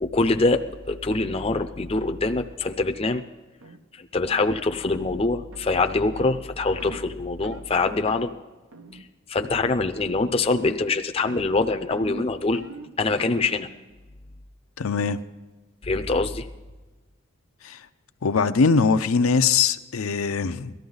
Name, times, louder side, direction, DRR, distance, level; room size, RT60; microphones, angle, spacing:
voice 1, 0.0-3.2 4.0-8.3 9.3-12.6 13.0-13.7 15.8-16.5, left 3 dB, 25° left, 0.5 m, -24 dB
sound 1, 3.6-3.8 4.2-4.5 4.9-5.1 5.5-5.7 6.2-6.4 6.8-7.1 7.4-7.7 8.1-8.3 8.7-9.1 9.3-9.7 10.0-10.4 10.6-11.0 11.3-13.6, right 2 dB, 85° right, 1.1 m, -42 dB
voice 2, 14.8-15.2 17.6-17.8 18.2-20.7, left 5 dB, 80° left, 0.6 m, -21 dB
18.0 x 13.0 x 3.9 m
head